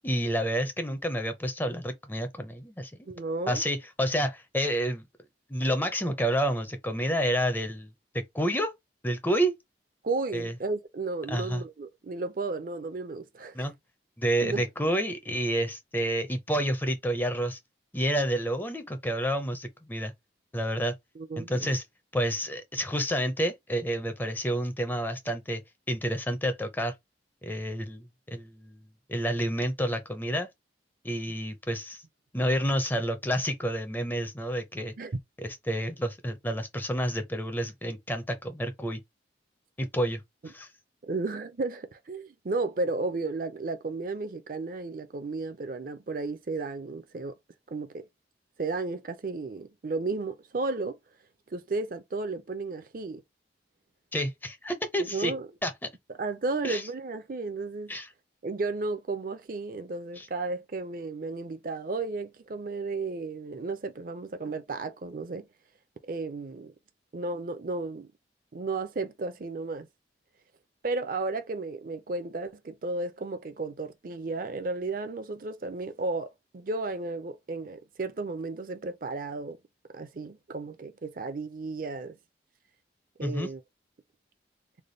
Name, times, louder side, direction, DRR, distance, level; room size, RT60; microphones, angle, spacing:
voice 1, 0.0-2.9 3.5-5.0 5.5-8.7 9.0-9.5 10.3-10.6 11.3-11.6 13.5-13.7 14.2-17.6 17.9-20.1 20.5-20.9 21.4-21.8 22.1-25.6 25.9-27.0 27.4-28.8 29.1-30.5 31.0-32.0 32.3-34.9 35.4-39.0 39.8-40.7 54.1-55.3 55.6-55.9 56.6-56.8 57.9-58.1 60.2-60.3 83.2-83.5, equal, 10° left, 0.5 m, -29 dB
voice 2, 3.1-3.6 10.0-13.6 14.4-14.6 21.2-21.7 35.0-35.2 41.1-47.4 47.7-48.1 48.6-51.0 51.5-53.2 55.1-55.5 56.2-57.9 58.4-65.5 66.1-66.7 67.1-68.1 68.5-69.9 70.8-79.6 79.9-82.2 83.2-83.6, right 3 dB, 50° right, 0.5 m, -33 dB
3.3 x 2.2 x 3.8 m
head